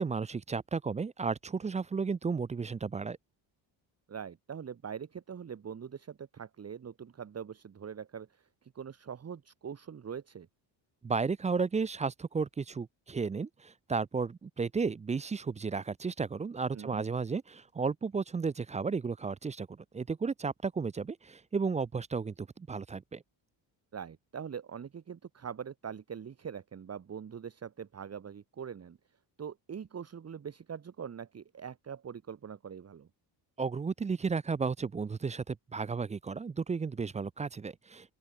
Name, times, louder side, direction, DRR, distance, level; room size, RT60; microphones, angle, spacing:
voice 1, 0.0-3.2 11.0-19.7 19.9-23.2 33.6-38.1, right 5 dB, 15° right, 0.4 m, -33 dB
voice 2, 4.1-10.5 16.7-17.0 23.9-29.0 29.4-33.1, right 7 dB, 30° right, 1.5 m, -43 dB
open air
cardioid pair, 95°, 47 cm